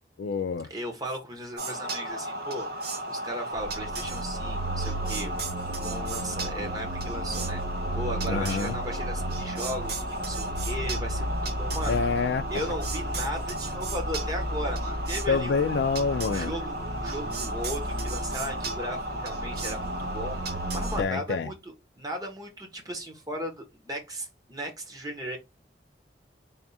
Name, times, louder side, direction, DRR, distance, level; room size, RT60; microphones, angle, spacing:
voice 1, 0.2-0.7 8.2-8.7 11.9-12.5 15.3-16.5 21.0-21.5, left 5 dB, 75° left, 0.4 m, -27 dB
voice 2, 0.7-2.7 3.1-5.3 5.7-7.6 7.9-12.0 12.5-15.6 16.2-25.4, equal, 20° right, 1.1 m, -36 dB
sound 1, 1.6-21.0, right 1 dB, 60° right, 0.8 m, -32 dB
3.5 x 2.4 x 4.0 m
head